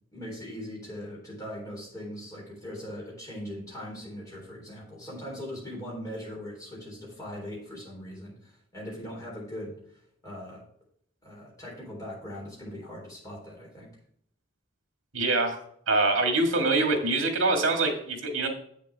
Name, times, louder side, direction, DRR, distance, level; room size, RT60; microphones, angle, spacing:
voice 1, 0.1-10.6 11.2-13.9, equal, 15° left, -4 dB, 3.6 m, -40 dB
voice 2, 15.1-15.6 15.9-18.5, right 2 dB, 70° right, 3 dB, 1.9 m, -24 dB
7.8 x 7.2 x 3.5 m, 0.65 s
head